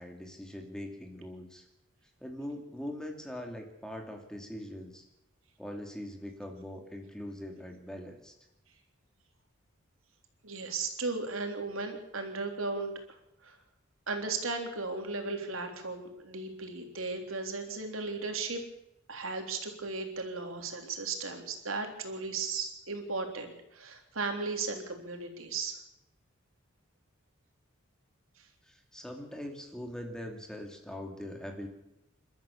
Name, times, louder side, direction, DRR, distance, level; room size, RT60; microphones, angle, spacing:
voice 1, 0.0-1.6 2.2-5.0 5.6-8.3 28.6-31.7, left 1 dB, 5° left, 3 dB, 2.7 m, -42 dB
voice 2, 10.4-12.9 13.4-13.6 14.1-18.6 19.1-25.8, right 3 dB, 85° right, 4 dB, 3.6 m, -36 dB
28.5 x 13.0 x 7.2 m, 0.86 s
head